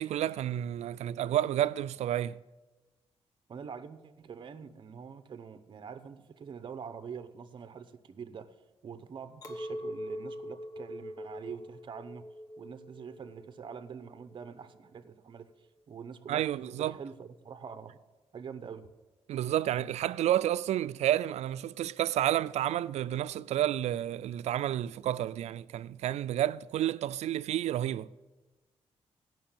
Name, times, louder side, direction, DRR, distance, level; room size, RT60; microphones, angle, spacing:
voice 1, 0.0-2.4 16.3-17.0 19.3-28.1, right 12 dB, 90° right, 0.4 m, -30 dB
voice 2, 3.5-8.6 8.8-12.3 12.6-15.5 15.9-18.0 18.3-18.9, right 6 dB, 45° right, 0.8 m, -45 dB
Chink clink, 9.4-14.8, equal, 35° left, 1.3 m, -43 dB
16.0 x 6.0 x 8.8 m
wide cardioid pair, 145°, 11 cm